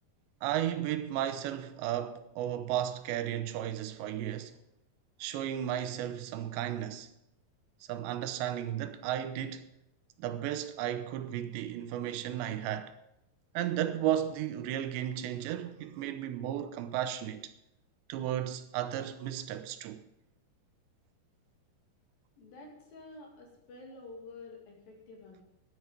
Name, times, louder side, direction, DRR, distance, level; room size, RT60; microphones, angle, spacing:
voice 1, 0.4-4.6 5.2-7.1 7.9-9.7 10.2-12.9 13.5-17.5 18.1-20.0, right 11 dB, 85° right, 3.1 m, -34 dB
voice 2, 22.4-25.4, left 2 dB, 60° left, 3.9 m, -49 dB
13.0 x 11.0 x 5.0 m
omnidirectional pair, 5.0 m